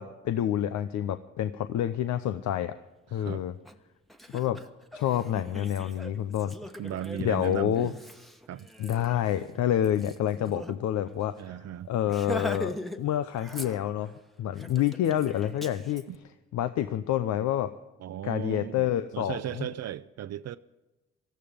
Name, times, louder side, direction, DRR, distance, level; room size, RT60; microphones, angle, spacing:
voice 1, 0.0-2.7 3.1-3.5 4.3-4.6 4.9-6.5 7.2-7.9 8.8-11.3 11.9-14.1 14.4-16.0 16.5-17.7 18.2-19.7, left 11 dB, 75° left, 0.7 m, -28 dB
voice 2, 3.1-3.4 6.8-8.0 8.5-8.7 11.4-11.9 16.1-16.2 18.0-20.6, right 11 dB, 60° right, 0.6 m, -36 dB
Laughter, 3.6-3.7 4.1-10.7 11.1-11.2 11.5-11.7 12.1-13.0 13.3-14.1 14.6-16.0, equal, ahead, 1.2 m, -41 dB
18.5 x 13.0 x 5.2 m
supercardioid pair, 65°, 29 cm